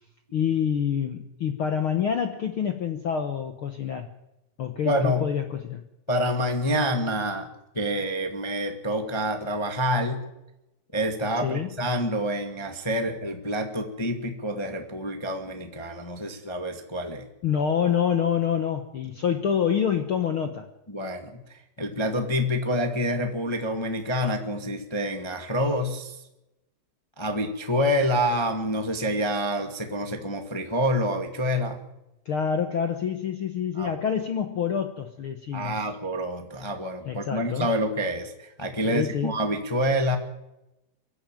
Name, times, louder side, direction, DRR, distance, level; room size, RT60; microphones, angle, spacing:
voice 1, 0.3-4.1 4.6-5.8 11.4-11.7 17.4-20.7 32.2-35.8 37.0-37.7 38.8-39.4, left 8 dB, 65° left, 6 dB, 1.3 m, -27 dB
voice 2, 4.8-5.3 6.1-7.5 7.7-10.3 10.9-17.3 20.9-21.4 21.8-26.2 27.2-31.8 33.8-33.9 35.5-40.2, equal, 20° left, 4 dB, 0.7 m, -27 dB
23.5 x 14.5 x 9.0 m, 0.92 s
omnidirectional pair, 4.1 m